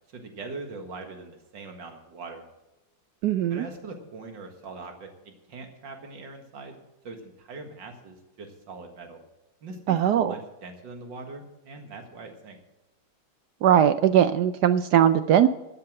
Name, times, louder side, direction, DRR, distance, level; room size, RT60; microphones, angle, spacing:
voice 1, 0.1-2.4 3.5-5.1 5.5-6.8 7.0-9.2 9.6-12.6, right 3 dB, 60° right, 4 dB, 2.4 m, -41 dB
voice 2, 3.2-3.7 9.9-10.3 13.6-15.5, right 10 dB, 75° right, 11 dB, 0.9 m, -20 dB
13.0 x 7.7 x 7.5 m, 1.0 s
omnidirectional pair, 2.3 m